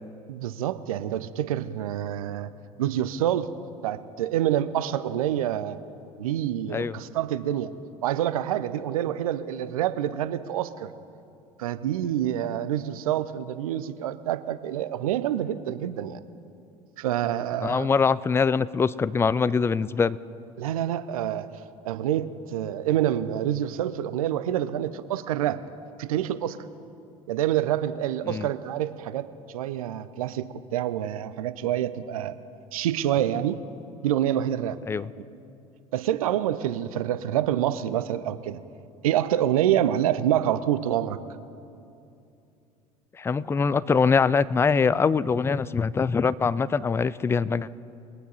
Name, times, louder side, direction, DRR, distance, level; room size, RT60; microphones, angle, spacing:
voice 1, 0.3-2.5 2.8-3.5 3.8-5.8 6.2-7.7 8.0-10.9 11.6-16.2 17.0-17.9 20.6-21.5 21.8-25.6 26.0-26.6 27.3-32.3 32.7-33.6 34.0-34.8 35.9-38.6 39.0-41.2, right 11 dB, 70° right, 14 dB, 0.6 m, -27 dB
voice 2, 17.6-20.2 28.2-28.5 34.9-35.1 43.1-47.7, left 5 dB, 15° left, 19 dB, 0.3 m, -23 dB
22.0 x 9.2 x 4.1 m, 2.7 s
figure-of-eight pair, 65°, 19 cm